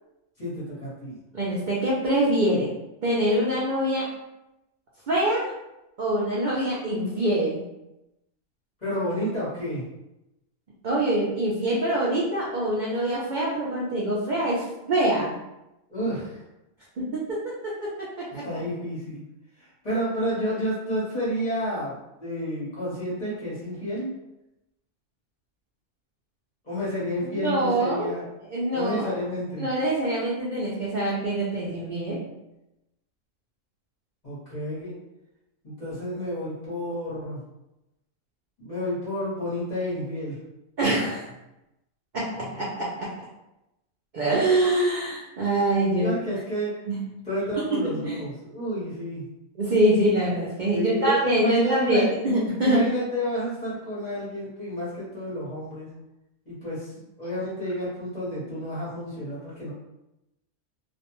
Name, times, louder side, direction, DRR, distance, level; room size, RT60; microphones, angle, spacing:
voice 1, 0.4-1.2 8.8-9.8 15.9-16.4 18.4-19.2 19.6-21.9 22.2-24.1 26.6-28.2 28.7-29.6 34.2-35.0 35.6-37.4 38.6-40.4 46.0-46.8 47.2-49.3 50.7-52.1 52.6-55.9 56.5-56.9 57.2-59.7, equal, 35° left, -9 dB, 0.9 m, -30 dB
voice 2, 1.3-2.7 3.0-4.1 5.1-5.5 6.0-7.6 10.8-15.3 17.0-18.4 27.3-28.1 28.5-29.1 29.6-32.2 40.8-41.3 42.1-43.1 44.1-46.2 46.9-47.0 47.6-48.2 49.6-52.8, right 1 dB, 90° right, -6 dB, 0.4 m, -24 dB
2.4 x 2.1 x 2.9 m, 0.92 s
omnidirectional pair, 1.5 m